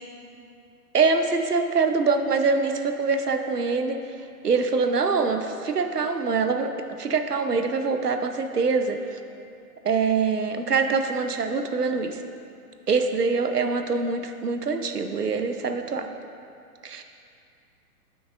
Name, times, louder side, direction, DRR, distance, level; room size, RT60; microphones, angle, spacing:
voice 1, 0.9-4.0 4.4-6.7 7.0-9.2 9.8-12.2 12.9-16.1 16.8-17.0, right 4 dB, 85° right, 7 dB, 0.7 m, -24 dB
12.0 x 5.9 x 2.5 m, 2.5 s
figure-of-eight pair, 125°, 46 cm